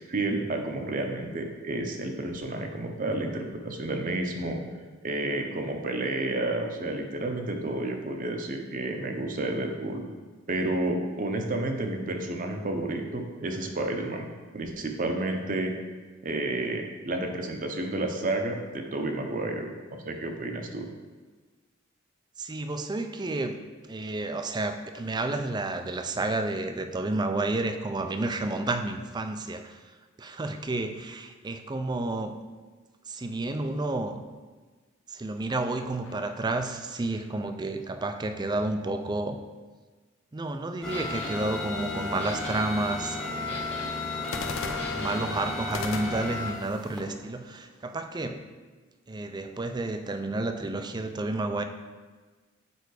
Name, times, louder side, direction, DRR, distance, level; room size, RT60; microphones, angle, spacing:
voice 1, 0.1-4.6 5.0-10.0 10.5-14.3 14.5-15.7 16.2-19.7 20.0-20.9, right 2 dB, 40° right, 4 dB, 0.7 m, -30 dB
voice 2, 22.4-29.8 30.2-32.4 33.1-34.2 35.1-39.4 40.3-43.7 44.3-48.4 49.1-51.6, right 2 dB, 20° right, 8 dB, 0.4 m, -31 dB
sound 1, 36.0-37.5 44.2-48.2, left 4 dB, 80° left, 0.6 m, -40 dB
sound 2, 40.8-47.0, left 2 dB, 5° left, 0.9 m, -34 dB
sound 3, 40.9-45.7, left 3 dB, 30° left, 1.2 m, -41 dB
6.8 x 4.6 x 4.8 m, 1.4 s
head